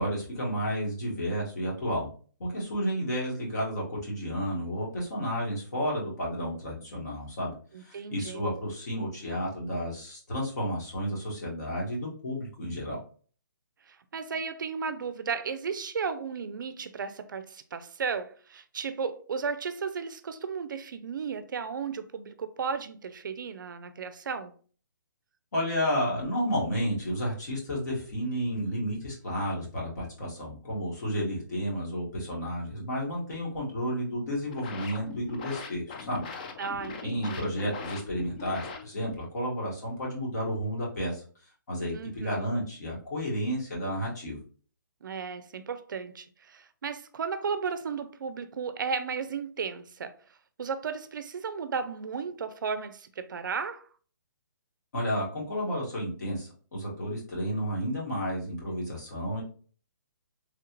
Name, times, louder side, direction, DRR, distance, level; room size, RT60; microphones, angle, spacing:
voice 1, 0.0-2.1 2.4-7.5 7.8-13.0 25.5-36.2 37.0-41.2 41.7-44.4 54.9-59.4, equal, 55° left, 1.6 m, -31 dB
voice 2, 7.7-8.4 13.9-24.5 36.6-37.5 41.9-42.5 45.0-50.1 50.6-53.9, right 5 dB, 70° right, 0.4 m, -34 dB
sound 1, 34.2-39.2, left 4 dB, 25° left, 0.3 m, -41 dB
3.3 x 2.4 x 2.9 m
hypercardioid pair, 165°, 11 cm